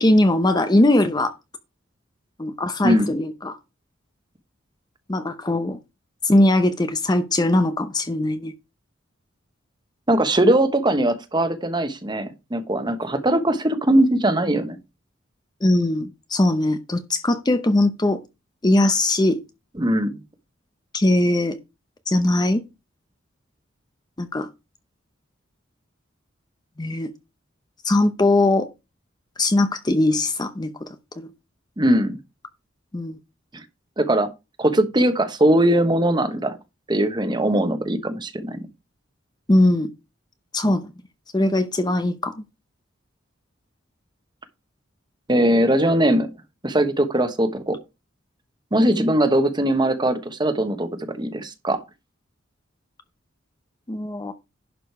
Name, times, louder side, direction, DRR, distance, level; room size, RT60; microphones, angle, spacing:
voice 1, 0.0-1.4 2.4-3.6 5.1-5.8 6.2-8.5 15.6-18.2 18.6-19.4 20.9-21.6 22.1-22.6 24.2-24.5 26.8-27.1 27.8-28.7 29.4-30.7 31.2-31.3 32.9-33.2 39.5-39.9 40.5-40.8 41.3-42.3 48.9-49.0 53.9-54.3, left 1 dB, 20° left, 0.7 m, -20 dB
voice 2, 10.1-14.8 19.8-20.1 31.8-32.2 33.5-33.6 34.0-34.3 34.6-36.6 36.9-38.6 45.3-46.3 46.6-47.8 48.7-51.8, right 1 dB, 20° right, 1.1 m, -20 dB
11.0 x 5.0 x 4.7 m
head